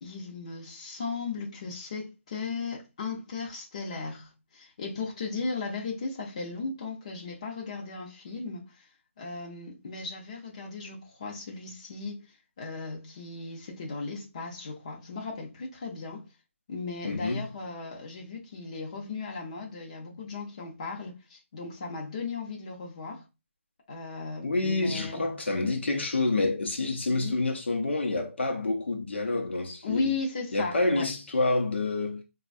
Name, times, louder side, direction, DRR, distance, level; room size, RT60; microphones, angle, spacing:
voice 1, 0.0-8.7 9.2-12.2 12.6-16.3 16.7-23.2 23.9-25.2 27.1-27.4 29.8-31.1, left 4 dB, 25° left, 0.8 m, -36 dB
voice 2, 17.0-17.5 24.4-30.1 30.5-32.2, left 2 dB, 55° left, 0.7 m, -28 dB
4.5 x 2.3 x 2.5 m
figure-of-eight pair, 170°, 7 cm